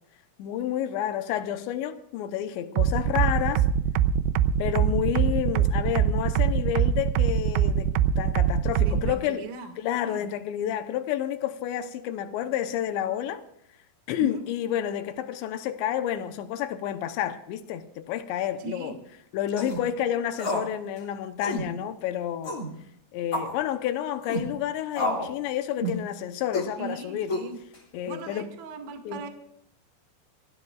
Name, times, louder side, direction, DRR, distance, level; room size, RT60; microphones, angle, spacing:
voice 1, 0.4-3.7 4.6-9.5 9.8-13.4 14.1-19.0 19.3-22.6 23.1-27.4 27.9-28.5 29.1-29.2, left 10 dB, 75° left, 2.8 m, -30 dB
sound 1, 2.8-9.1, right 9 dB, 85° right, 2.5 m, -22 dB
voice 2, 8.8-9.7 10.0-10.3 14.2-14.4 18.6-19.0 26.8-27.6 28.0-29.3, right 4 dB, 50° right, 2.6 m, -38 dB
sound 2, 19.5-19.8 20.4-20.7 21.0-21.1 21.4-21.7 22.4-22.7 23.3-23.6 24.2-24.5 24.9-25.3 25.8-26.0 26.5-26.7 27.3-27.8, left 1 dB, 25° left, 1.8 m, -29 dB
26.5 x 16.0 x 2.4 m
omnidirectional pair, 5.8 m